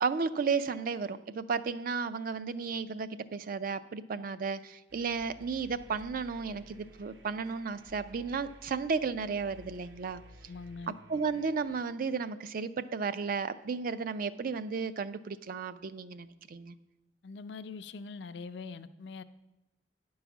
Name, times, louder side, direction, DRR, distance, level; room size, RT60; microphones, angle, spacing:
voice 1, 0.0-10.2 11.1-16.7, right 5 dB, 50° right, 12 dB, 0.4 m, -33 dB
sound 1, 4.9-11.8, equal, 75° right, 0.9 m, -55 dB
voice 2, 10.5-11.0 17.2-19.2, left 4 dB, 65° left, 12 dB, 0.4 m, -43 dB
9.9 x 4.7 x 7.1 m, 0.97 s
head